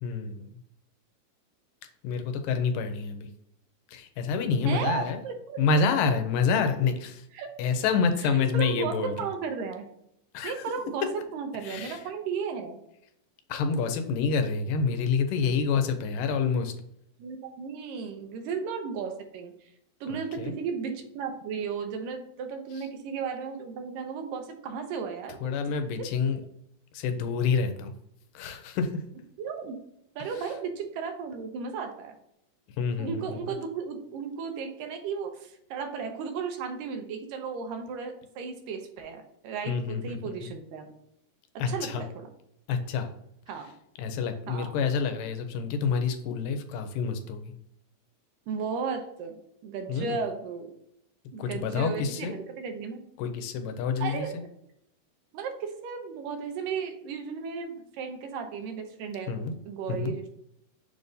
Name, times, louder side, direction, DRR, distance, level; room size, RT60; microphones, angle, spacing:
voice 1, 0.0-0.5 2.0-3.3 3.9-5.2 5.6-7.3 7.6-9.3 10.3-10.5 11.6-12.0 13.5-16.7 20.1-20.6 22.8-22.9 25.4-26.4 26.9-27.9 28.3-28.9 32.8-33.5 39.7-40.5 41.6-42.0 42.7-43.1 44.0-47.5 49.9-50.2 51.4-52.4 53.2-54.3 59.3-59.6 59.9-60.1, left 5 dB, 90° left, 7 dB, 2.4 m, -28 dB
voice 2, 4.7-5.6 7.3-7.5 8.3-9.9 10.4-11.1 11.3-12.8 17.2-19.5 20.0-25.5 29.4-29.8 30.2-32.2 33.0-40.9 41.7-42.3 43.5-43.7 44.5-44.7 48.5-49.3 49.6-50.7 51.3-53.0 54.0-54.3 55.3-59.4 59.7-60.4, right 6 dB, 85° right, 5 dB, 2.4 m, -34 dB
6.8 x 2.7 x 5.2 m, 0.75 s
omnidirectional pair, 3.9 m